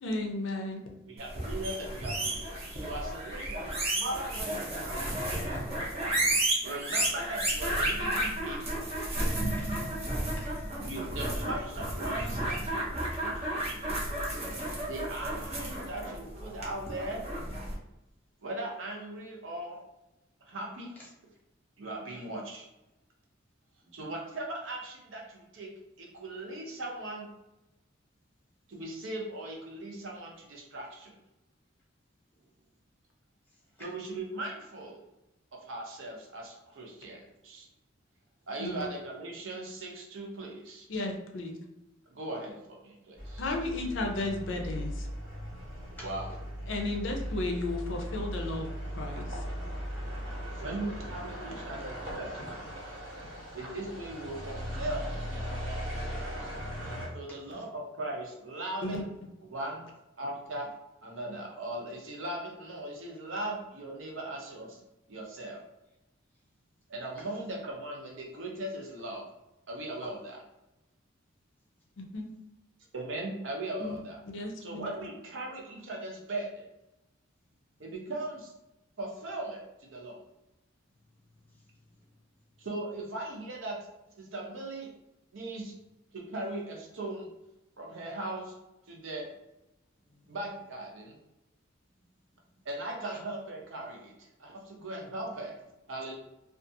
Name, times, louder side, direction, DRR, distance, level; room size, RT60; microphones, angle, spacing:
voice 1, 0.0-0.8 38.6-38.9 40.9-41.6 43.4-45.1 46.7-48.7 49.0-49.4 57.5-57.6 58.8-59.0 72.0-72.3 73.8-74.0 74.3-74.9, left 2 dB, 65° left, 2 dB, 0.5 m, -34 dB
sound 1, 1.2-17.7, right 1 dB, 30° right, 0.7 m, -32 dB
voice 2, 1.2-5.6 6.6-9.0 10.8-13.5 14.9-17.3 18.4-19.8 20.4-20.9 21.8-22.6 23.9-25.7 26.0-27.3 28.7-31.1 33.8-35.0 35.6-37.7 38.5-40.9 42.1-43.4 46.0-46.4 50.5-52.7 53.5-56.6 57.1-59.1 59.5-59.8 60.2-60.7 61.0-64.8 65.1-65.6 66.9-69.2 69.7-70.4 72.9-74.2 74.6-76.6 77.8-78.5 79.0-80.2 82.6-83.8 84.2-84.9 85.3-85.7 86.1-87.3 87.8-88.5 88.9-89.3 90.3-91.2 92.6-95.6 95.9-96.1, right 1 dB, 70° right, -1 dB, 0.7 m, -39 dB
voice 3, 9.6-10.6 23.8-23.9 33.8-33.9 46.0-46.1 57.3-57.7 67.2-67.3 93.1-93.2, equal, 10° left, -5 dB, 0.8 m, -51 dB
sound 2, 43.2-57.1, equal, 90° right, 1.2 m, -38 dB
2.5 x 2.4 x 2.6 m, 0.94 s
head